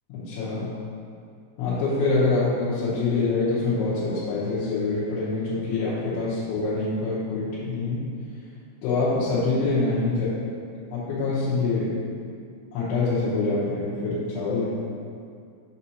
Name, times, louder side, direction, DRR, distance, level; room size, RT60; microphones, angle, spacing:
voice 1, 0.1-0.7 1.6-8.0 8.8-10.3 10.9-12.0 12.7-14.8, left 3 dB, 85° left, -12 dB, 3.6 m, -25 dB
8.0 x 2.8 x 6.1 m, 2.3 s
omnidirectional pair, 5.4 m